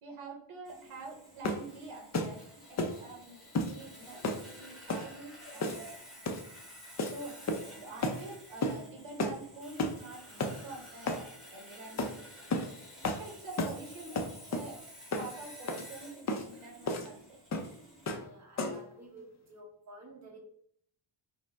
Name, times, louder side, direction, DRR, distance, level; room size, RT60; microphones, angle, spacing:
voice 1, 0.0-5.8 7.0-7.4 7.7-12.2 13.0-14.8 15.1-17.4, right 3 dB, 70° right, 1 dB, 0.9 m, -47 dB
Sawing, 0.6-18.1, equal, ahead, 1.0 m, -51 dB
sound 1, 1.4-1.7 2.1-2.3 2.8-3.0 3.5-3.7 4.2-4.4 4.9-5.1 5.6-5.9 6.2-6.5 7.0-7.2 7.5-7.7 8.0-8.2 8.6-8.8 9.2-9.4 9.8-10.0 10.4-10.6 11.1-11.2 12.0-12.1 12.5-12.7 13.0-13.2 13.6-13.8 14.1-14.7 15.1-15.3 15.7-15.8 16.3-16.4 16.9-17.1 17.5-17.7 18.1-18.3 18.6-18.9, left 2 dB, 35° left, 0.4 m, -32 dB
voice 2, 18.0-20.4, right 1 dB, 35° right, 0 dB, 1.0 m, -52 dB
4.9 x 2.1 x 3.3 m, 0.66 s
wide cardioid pair, 170°, 50 cm